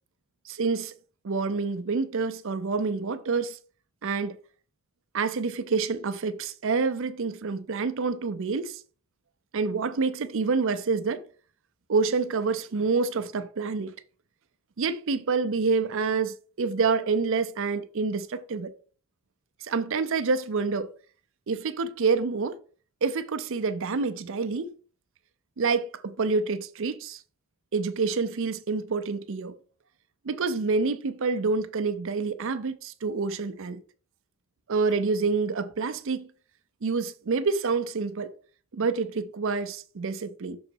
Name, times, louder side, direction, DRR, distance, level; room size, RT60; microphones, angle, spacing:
voice 1, 0.5-0.9 1.2-3.6 4.0-4.4 5.1-8.8 9.5-11.2 11.9-13.9 14.8-18.7 19.6-20.9 21.5-22.6 23.0-24.7 25.6-27.2 27.7-29.6 30.2-33.8 34.7-36.3 36.8-38.3 38.7-40.6, right 4 dB, 60° right, 0.5 m, -27 dB
6.3 x 3.9 x 4.6 m
head